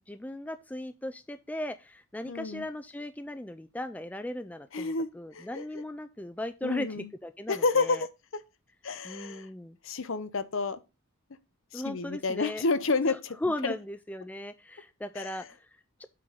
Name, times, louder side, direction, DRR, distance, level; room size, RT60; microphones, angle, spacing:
voice 1, 0.1-8.1 9.0-9.8 11.7-12.6 13.1-16.0, left 1 dB, 5° left, 0.3 m, -37 dB
voice 2, 2.3-2.7 4.7-5.6 6.6-7.1 7.5-8.1 8.8-9.5 9.8-10.8 11.7-13.4 13.6-13.7 15.2-15.3, left 3 dB, 65° left, 0.8 m, -30 dB
7.6 x 3.9 x 5.6 m
head